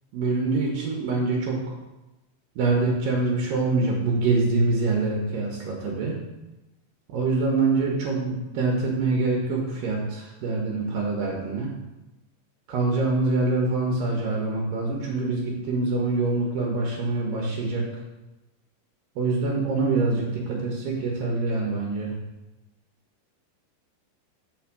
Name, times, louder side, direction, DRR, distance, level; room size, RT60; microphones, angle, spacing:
voice 1, 0.1-1.6 2.6-6.2 7.1-11.7 12.7-17.9 19.2-22.1, right 3 dB, 85° right, -1 dB, 1.9 m, -25 dB
6.4 x 4.3 x 6.0 m, 1.0 s
omnidirectional pair, 5.4 m